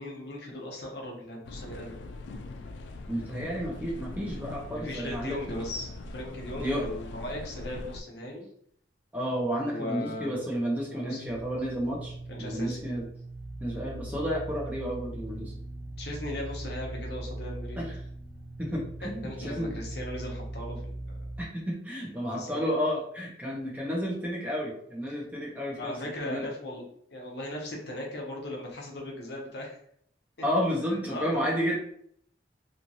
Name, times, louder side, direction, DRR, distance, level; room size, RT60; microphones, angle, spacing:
voice 1, 0.0-2.1 4.7-8.4 9.6-10.5 10.8-11.3 12.3-12.8 16.0-17.8 19.0-20.8 21.1-21.2 22.3-22.7 25.8-26.8 27.1-29.8 30.8-31.4, left 1 dB, 65° left, -1 dB, 0.8 m, -38 dB
sound 1, 1.4-8.0, left 2 dB, 85° left, 0.3 m, -41 dB
voice 2, 3.1-5.4 6.6-6.8 9.1-13.0 13.6-15.5 17.8-17.9 18.6-19.8 21.4-26.4 30.4-31.8, equal, 10° right, -3 dB, 0.7 m, -31 dB
sound 2, 11.2-21.5, right 2 dB, 90° right, 0.5 m, -39 dB
3.0 x 2.4 x 2.6 m, 0.65 s
head